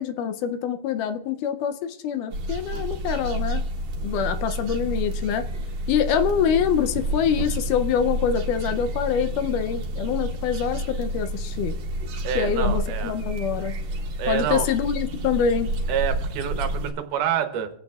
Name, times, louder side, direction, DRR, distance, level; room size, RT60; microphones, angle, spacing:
voice 1, 0.0-3.6 4.0-5.4 5.9-11.7 12.4-13.7 14.3-15.7, left 8 dB, 80° left, 9 dB, 2.1 m, -25 dB
sound 1, 2.3-16.9, right 1 dB, 60° right, 2.3 m, -29 dB
voice 2, 2.7-3.0 4.1-4.4 12.2-13.1 14.2-14.7 15.9-17.7, right 9 dB, 75° right, 7 dB, 2.5 m, -28 dB
25.5 x 8.9 x 2.3 m, 0.76 s
omnidirectional pair, 3.8 m